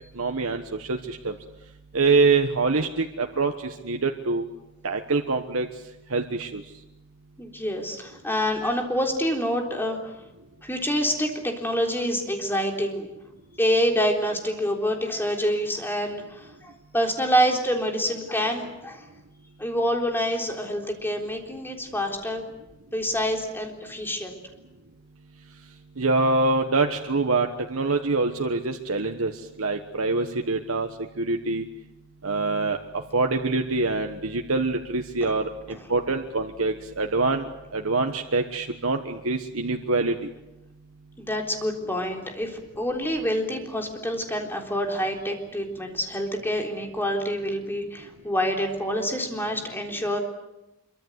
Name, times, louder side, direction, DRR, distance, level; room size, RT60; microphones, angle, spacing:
voice 1, 0.1-1.3 1.9-4.4 4.8-5.7 6.1-6.6 26.0-29.3 29.6-30.9 31.2-31.6 32.2-32.8 33.1-40.1, right 3 dB, 90° right, 4 dB, 1.3 m, -25 dB
voice 2, 7.4-10.1 10.6-13.1 13.6-19.0 19.6-22.5 22.9-24.4 35.2-35.3 35.7-35.8 41.2-50.2, equal, 10° left, 2 dB, 3.7 m, -27 dB
25.5 x 24.0 x 8.2 m, 0.98 s
head